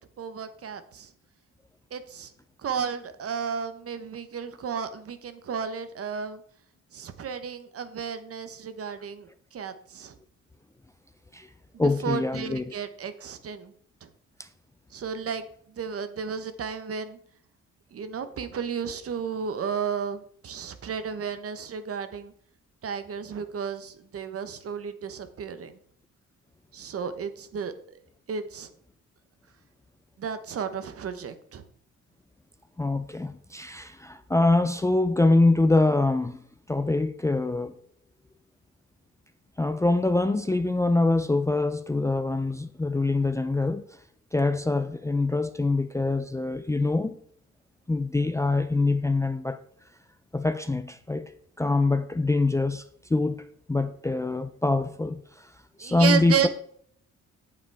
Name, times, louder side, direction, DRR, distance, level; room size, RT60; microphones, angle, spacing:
voice 1, 0.2-1.1 1.9-2.3 2.6-6.4 6.9-10.1 12.0-13.7 14.0-14.1 14.9-15.4 15.8-17.2 17.9-22.3 22.8-25.7 26.7-27.7 28.3-28.7 30.2-31.6 55.8-56.5, right 7 dB, 50° right, 1.0 m, -33 dB
voice 2, 11.8-12.7 32.8-36.4 36.7-37.7 39.6-43.8 44.3-47.2 47.9-49.6 50.3-51.3 51.6-52.8 53.1-53.4 53.7-55.2 55.8-56.5, left 2 dB, 10° left, 0.4 m, -24 dB
8.6 x 7.3 x 3.5 m
cardioid pair, 90°, 30 cm